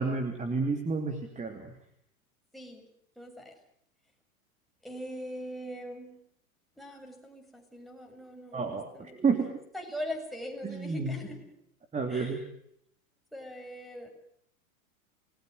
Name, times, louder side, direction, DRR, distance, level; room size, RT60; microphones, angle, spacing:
voice 1, 0.0-1.7 8.5-9.5 10.6-11.2 11.9-12.4, right 4 dB, 15° right, 6 dB, 3.1 m, -30 dB
voice 2, 2.5-2.8 3.2-3.6 4.8-6.2 6.8-9.2 9.7-11.6 12.1-12.5 13.3-14.1, equal, ahead, 1 dB, 6.8 m, -41 dB
29.5 x 20.5 x 6.6 m, 0.70 s
hypercardioid pair, 100°, 43 cm